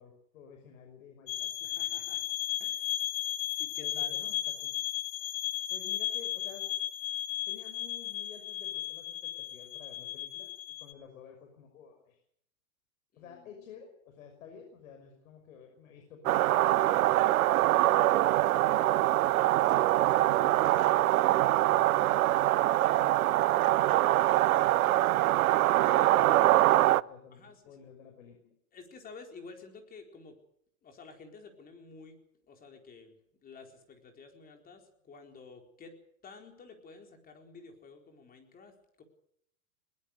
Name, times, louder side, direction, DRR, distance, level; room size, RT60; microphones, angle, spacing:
voice 1, 0.0-1.5 3.8-4.7 5.7-6.7 7.5-10.5 10.8-12.2 13.1-16.9 17.9-25.0 25.4-27.4 27.7-28.5, left 7 dB, 70° left, 4 dB, 5.8 m, -52 dB
sound 1, 1.3-10.9, left 13 dB, 45° left, 2.0 m, -35 dB
voice 2, 1.6-2.2 2.6-2.9 3.6-4.1 13.1-13.6 27.3-27.8 28.7-30.4 30.8-32.2 32.5-33.2 33.4-36.0 36.2-39.0, left 4 dB, 20° left, 4 dB, 4.3 m, -51 dB
sound 2, 16.3-27.0, right 15 dB, 75° right, 0.8 m, -24 dB
21.0 x 20.5 x 6.6 m, 0.71 s
hypercardioid pair, 140°, 43 cm